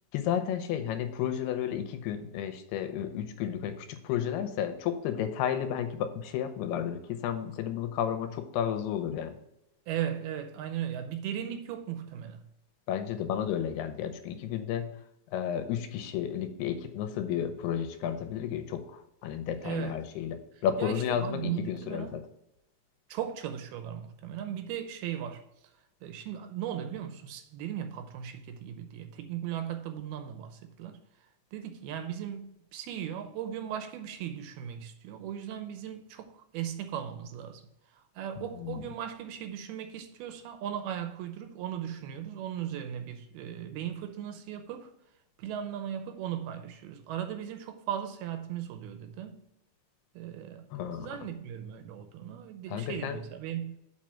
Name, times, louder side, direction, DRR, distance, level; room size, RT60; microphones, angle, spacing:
voice 1, 0.1-9.3 12.9-14.9 15.3-20.4 20.6-22.2 38.4-38.9 50.7-51.1 52.7-53.2, left 9 dB, 90° left, 2.8 m, -32 dB
voice 2, 9.9-12.4 19.6-20.0 20.8-22.1 23.1-25.4 26.0-31.0 31.5-37.6 38.2-44.9 45.4-49.4 50.2-50.6 51.0-53.8, right 10 dB, 80° right, 2.6 m, -37 dB
7.4 x 4.8 x 6.0 m
omnidirectional pair, 4.6 m